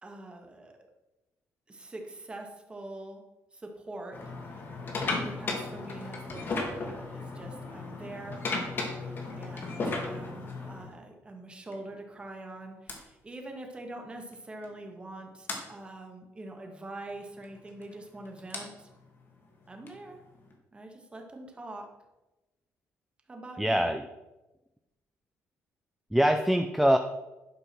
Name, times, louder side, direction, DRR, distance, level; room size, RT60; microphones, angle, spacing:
voice 1, 0.0-0.8 1.7-3.2 3.5-4.2 5.1-8.4 9.0-9.1 9.4-18.9 19.7-20.2 20.7-21.9 23.3-23.9, right 2 dB, 20° right, 2 dB, 1.9 m, -44 dB
sound 1, 4.1-10.9 11.7-11.9 12.9-13.0 14.3-14.4 14.6-14.8 15.5-15.6 17.4-20.5, left 3 dB, 45° left, 2.3 m, -35 dB
voice 2, 23.6-24.1 26.1-27.0, equal, 5° right, 7 dB, 0.5 m, -23 dB
11.5 x 5.5 x 6.2 m, 1.0 s
cardioid pair, 115°, 5 cm